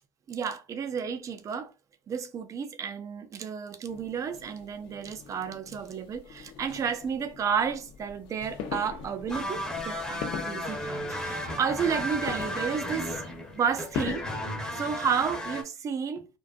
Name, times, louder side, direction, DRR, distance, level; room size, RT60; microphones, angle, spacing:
voice 1, 0.3-1.7 2.1-13.2 13.5-14.2 14.7-16.3, right 7 dB, 35° right, 0.4 m, -31 dB
sound 1, 3.9-14.8, left 7 dB, 60° left, 0.5 m, -41 dB
sound 2, 9.3-15.6, equal, 5° left, 0.7 m, -34 dB
2.5 x 2.2 x 2.3 m
supercardioid pair, 100°, 10 cm